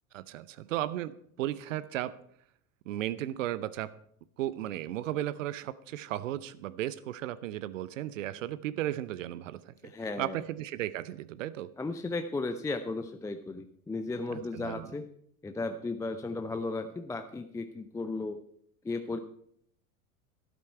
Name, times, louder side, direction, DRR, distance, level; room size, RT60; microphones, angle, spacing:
voice 1, 0.1-2.2 2.9-3.9 4.4-9.9 10.2-11.7 14.3-14.9, right 13 dB, 60° right, 17 dB, 0.7 m, -35 dB
voice 2, 9.8-10.4 11.8-15.1 15.4-18.4 18.8-19.2, left 3 dB, 5° left, 8 dB, 0.6 m, -35 dB
12.5 x 12.0 x 4.5 m, 0.68 s
figure-of-eight pair, 80°, 44 cm